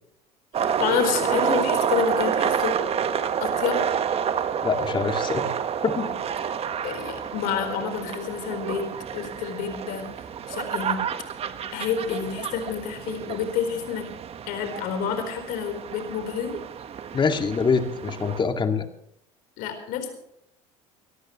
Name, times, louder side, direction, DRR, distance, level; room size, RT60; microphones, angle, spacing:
sound 1, 0.5-18.4, right 8 dB, 40° right, 1.4 m, -29 dB
voice 1, 0.8-2.8 3.4-3.8 6.8-8.9 9.1-10.1 10.5-11.0 11.7-14.1 14.5-16.5 19.6-20.1, left 7 dB, 70° left, 7 dB, 4.4 m, -28 dB
voice 2, 4.6-5.5 5.8-6.1 17.1-18.8, left 5 dB, 30° left, 6 dB, 2.3 m, -24 dB
24.0 x 14.5 x 3.2 m, 0.72 s
supercardioid pair, 85°, 15 cm